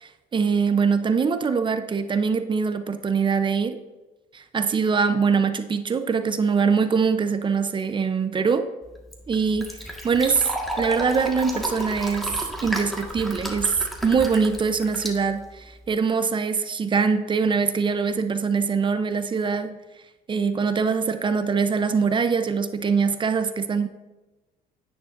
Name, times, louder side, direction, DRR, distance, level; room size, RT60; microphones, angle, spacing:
voice 1, 0.0-3.8 4.3-8.7 9.3-10.5 10.8-19.8 20.3-23.9, right 5 dB, 30° right, 9 dB, 0.7 m, -23 dB
Fill (with liquid), 8.8-15.9, right 1 dB, ahead, 1.6 m, -33 dB
9.9 x 9.6 x 2.6 m, 1.1 s
cardioid pair, 110°, 17 cm